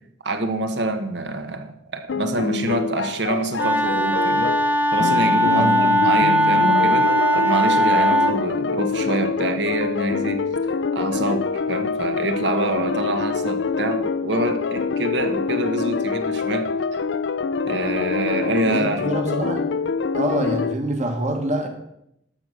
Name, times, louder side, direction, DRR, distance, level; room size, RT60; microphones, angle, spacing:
voice 1, 0.2-4.5 4.9-10.4 10.9-17.0 17.6-19.1, right 2 dB, 70° right, 7 dB, 1.3 m, -26 dB
sound 1, 2.1-20.7, left 4 dB, 70° left, 0.5 m, -25 dB
Wind instrument woodwind instrument, 3.6-8.4, equal, 10° right, 0.8 m, -19 dB
voice 2, 5.5-6.0 18.6-19.7 20.1-21.7, right 1 dB, 40° right, 4 dB, 1.5 m, -25 dB
11.5 x 6.8 x 6.4 m, 0.80 s
head